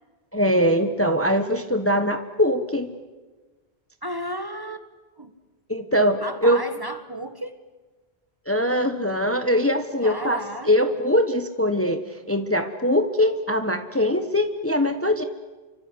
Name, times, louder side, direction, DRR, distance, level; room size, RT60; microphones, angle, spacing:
voice 1, 0.3-2.9 5.7-6.6 8.5-10.4 10.7-15.2, equal, 15° left, 7 dB, 1.2 m, -22 dB
voice 2, 4.0-4.8 5.2-5.3 6.2-7.6 10.0-11.0, equal, 20° right, 9 dB, 1.6 m, -33 dB
29.5 x 24.5 x 8.1 m, 1.3 s
omnidirectional pair, 1.1 m